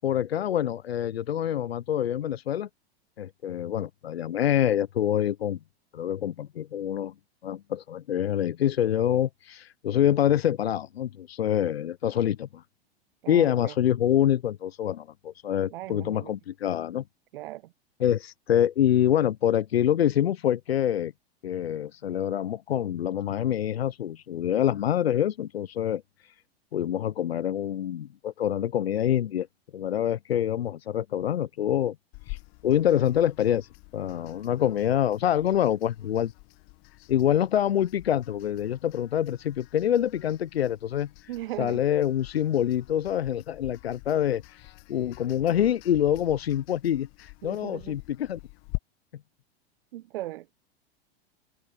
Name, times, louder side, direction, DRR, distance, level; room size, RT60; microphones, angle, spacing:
voice 1, 0.0-2.7 3.2-5.6 5.9-7.1 7.4-12.6 13.3-17.0 18.0-21.1 21.4-26.0 26.7-29.5 29.7-32.0 32.3-32.4 32.6-33.7 33.9-36.3 37.1-41.1 41.6-44.6 44.9-48.4, left 10 dB, 70° left, 1.1 m, -26 dB
voice 2, 13.2-13.7 15.7-16.3 17.3-17.7 41.3-41.8 47.4-48.0 49.9-50.5, right 15 dB, 60° right, 1.4 m, -38 dB
sound 1, 32.1-48.8, left 32 dB, 45° left, 1.4 m, -46 dB
figure-of-eight pair, 95°, 32 cm